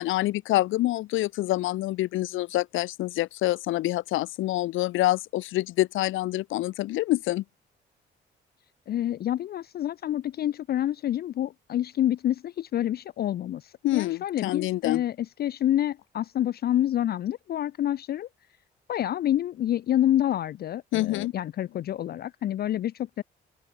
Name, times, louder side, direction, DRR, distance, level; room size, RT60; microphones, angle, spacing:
voice 1, 0.0-7.4 13.8-15.0 20.9-21.3, left 16 dB, 85° left, 0.7 m, -26 dB
voice 2, 8.9-18.3 18.9-23.2, left 12 dB, 50° left, 0.4 m, -28 dB
open air
cardioid pair, 90°, 20 cm